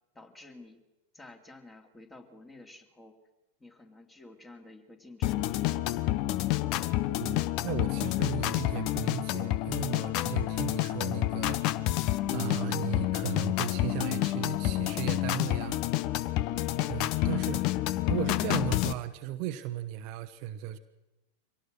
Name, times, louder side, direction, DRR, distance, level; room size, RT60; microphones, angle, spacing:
voice 1, 0.1-0.8 1.1-3.1 3.6-5.6, left 2 dB, 15° left, 5 dB, 2.9 m, -51 dB
sound 1, 5.2-18.9, left 15 dB, 40° left, 0.8 m, -29 dB
voice 2, 7.2-11.8 12.3-15.8 16.8-17.7 18.1-20.8, right 13 dB, 45° right, 9 dB, 1.0 m, -36 dB
24.5 x 18.0 x 6.5 m, 1.0 s
figure-of-eight pair, 90°, 0 cm